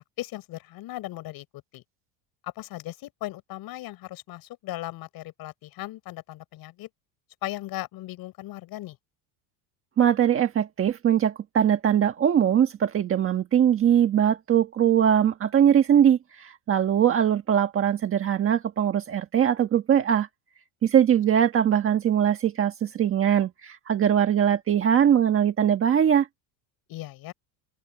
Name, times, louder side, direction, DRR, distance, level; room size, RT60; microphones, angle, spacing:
voice 1, 0.0-1.4 1.7-1.8 2.4-6.9 7.4-9.0 26.9-27.3, left 16 dB, 45° left, 6.7 m, -37 dB
voice 2, 10.0-20.3 20.8-26.3, right 9 dB, 25° right, 1.5 m, -21 dB
open air
cardioid pair, 165°, 49 cm